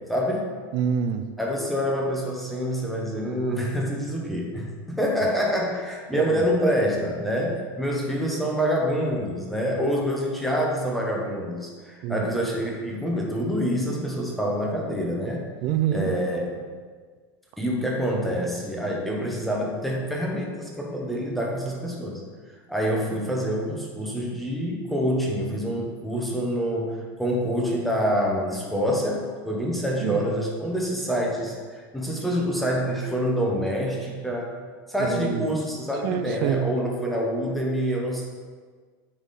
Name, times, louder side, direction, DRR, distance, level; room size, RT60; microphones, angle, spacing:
voice 1, 0.1-0.5 1.4-15.4 15.9-16.6 17.6-22.2 22.7-34.5 34.9-38.2, equal, ahead, -2 dB, 0.9 m, -26 dB
voice 2, 0.7-1.3 6.1-6.4 12.0-12.2 15.6-16.1 30.0-30.2 35.0-35.5 36.0-36.7, right 8 dB, 40° right, 9 dB, 0.4 m, -26 dB
9.7 x 3.6 x 4.1 m, 1.5 s
supercardioid pair, 170°, 12 cm